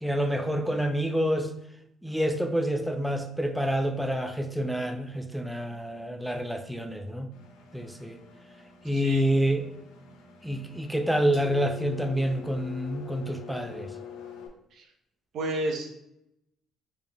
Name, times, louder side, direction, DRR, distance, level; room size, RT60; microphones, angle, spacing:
voice 1, 0.0-1.5 2.0-7.3 7.7-8.2 8.8-9.7 10.4-13.9, equal, ahead, 5 dB, 0.6 m, -28 dB
Engine, 7.3-14.5, left 7 dB, 80° left, 0.6 m, -45 dB
voice 2, 8.9-9.2 14.7-14.8 15.3-15.9, right 1 dB, 65° right, 1 dB, 1.0 m, -31 dB
4.7 x 3.6 x 2.3 m, 0.79 s
supercardioid pair, 60°, 0 cm